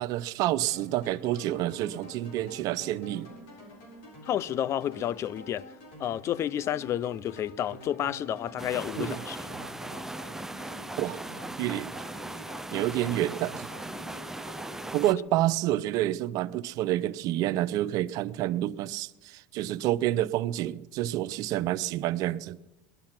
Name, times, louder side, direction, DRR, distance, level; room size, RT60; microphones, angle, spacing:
voice 1, 0.0-3.3 9.0-9.2 11.0-11.2 11.6-12.0 12.7-13.7 14.9-22.6, right 14 dB, 60° right, 0.6 m, -28 dB
sound 1, 0.6-15.6, left 1 dB, 80° left, 7.2 m, -47 dB
voice 2, 4.3-5.7 6.0-9.4, left 11 dB, 45° left, 0.5 m, -30 dB
sound 2, 8.6-15.1, right 2 dB, 5° right, 0.6 m, -39 dB
20.0 x 11.5 x 5.9 m
supercardioid pair, 105°, 7 cm